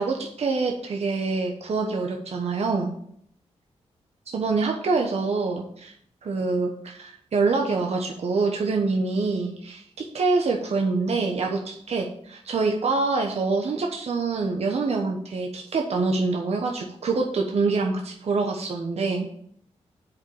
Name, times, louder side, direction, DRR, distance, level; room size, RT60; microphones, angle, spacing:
voice 1, 0.0-2.9 4.3-5.9 6.2-19.3, right 3 dB, 60° right, 1 dB, 1.1 m, -25 dB
7.7 x 5.2 x 7.2 m, 0.67 s
cardioid pair, 75°, 12 cm